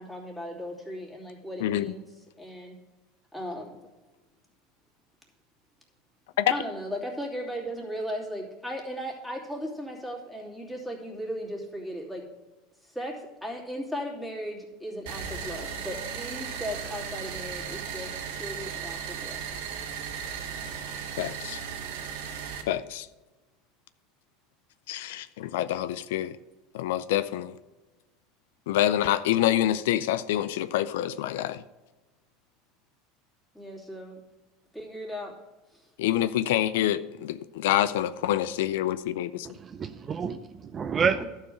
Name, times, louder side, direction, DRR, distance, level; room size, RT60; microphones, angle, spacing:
voice 1, 0.0-2.8 3.3-3.8 6.5-12.2 12.8-19.5 33.5-34.2 34.7-35.3 35.7-35.9, equal, 5° left, 2.8 m, -37 dB
voice 2, 1.6-1.9 6.4-6.5 21.2-21.6 22.7-23.1 24.9-26.3 26.7-27.6 28.7-31.6 36.0-39.5, left 12 dB, 80° left, 0.4 m, -26 dB
sound 1, 15.1-22.6, right 7 dB, 80° right, 1.5 m, -36 dB
voice 3, 39.6-41.2, right 6 dB, 30° right, 0.4 m, -28 dB
12.0 x 4.7 x 7.9 m
supercardioid pair, 115°, 0 cm